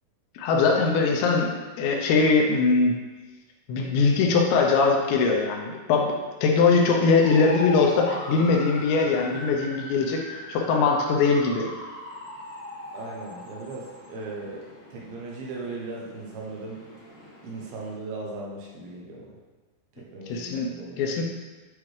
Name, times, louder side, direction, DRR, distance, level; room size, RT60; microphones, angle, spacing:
voice 1, 0.4-2.9 3.7-6.1 6.4-11.7 20.3-20.7 21.0-21.2, left 4 dB, 80° left, 1 dB, 2.9 m, -21 dB
sound 1, 7.2-17.9, left 1 dB, 65° left, 2.2 m, -40 dB
voice 2, 12.9-14.6 14.9-16.8 17.4-19.4 19.9-21.0, right 3 dB, 75° right, -3 dB, 2.4 m, -37 dB
8.7 x 4.7 x 3.2 m, 1.3 s
omnidirectional pair, 5.4 m